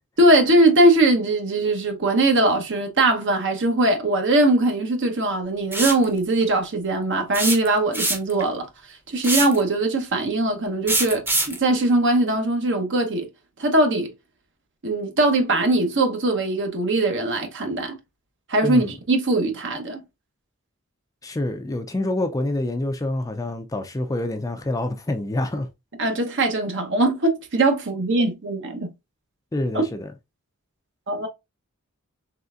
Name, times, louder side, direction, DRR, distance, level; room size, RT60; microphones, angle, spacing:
voice 1, 0.2-8.7 9.1-13.3 13.6-14.1 14.8-18.0 18.5-20.0 26.0-28.9 29.7-29.8 31.1-31.3, right 2 dB, 55° right, 1.0 m, -21 dB
sound 1, 5.7-6.0 7.3-8.4 9.2-9.6 10.9-11.6, right 2 dB, 10° right, 0.7 m, -23 dB
voice 2, 18.6-18.9 21.2-25.7 29.5-30.1, left 1 dB, 15° left, 0.4 m, -26 dB
3.8 x 3.3 x 2.4 m
head